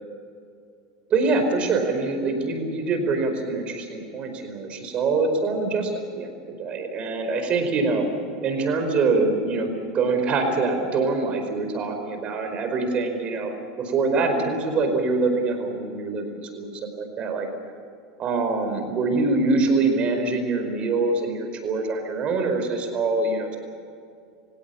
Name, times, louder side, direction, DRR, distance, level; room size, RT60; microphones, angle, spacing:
voice 1, 1.1-8.0 8.4-17.5 18.2-23.6, right 3 dB, 40° right, 5 dB, 4.9 m, -24 dB
28.0 x 17.0 x 7.3 m, 2.4 s
supercardioid pair, 110°, 3 cm